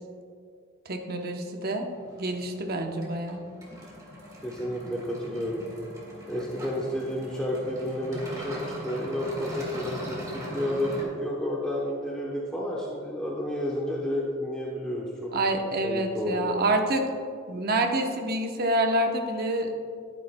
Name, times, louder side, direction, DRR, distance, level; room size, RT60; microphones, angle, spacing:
voice 1, 0.9-1.9 2.2-3.4 15.3-17.0 17.5-19.7, right 1 dB, 45° right, 4 dB, 0.9 m, -27 dB
sound 1, 1.9-11.0, equal, 15° right, 1.9 m, -41 dB
voice 2, 4.4-5.6 6.3-15.3 15.8-16.6, left 1 dB, 5° left, -5 dB, 0.9 m, -31 dB
11.5 x 9.8 x 2.2 m, 2.3 s
head